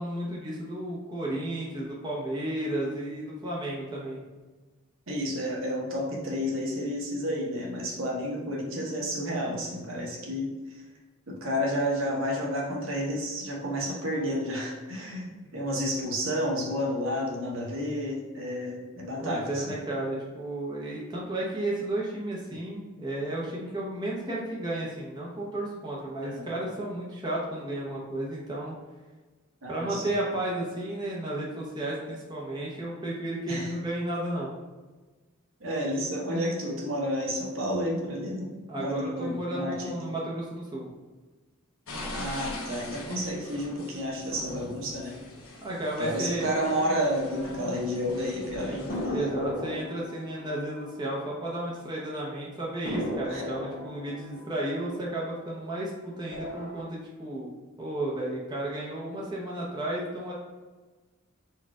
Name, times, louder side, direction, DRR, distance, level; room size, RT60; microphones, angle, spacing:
voice 1, 0.0-4.2 19.2-28.7 29.7-34.6 38.7-40.9 45.6-46.5 49.1-57.5 57.8-60.3, right 1 dB, 20° right, -5 dB, 0.8 m, -33 dB
voice 2, 5.1-10.8 11.3-19.7 26.2-26.5 29.6-30.1 33.5-33.7 35.6-38.5 38.8-39.9 42.2-45.1 46.0-48.9 53.3-53.4, equal, 65° right, -2 dB, 1.0 m, -31 dB
sound 1, 41.9-49.1, left 1 dB, 75° left, 1.0 m, -41 dB
sound 2, 48.9-51.9 52.2-52.3 52.8-55.8 56.2-56.8, left 1 dB, 50° left, 1.1 m, -37 dB
4.4 x 2.4 x 4.7 m, 1.3 s
head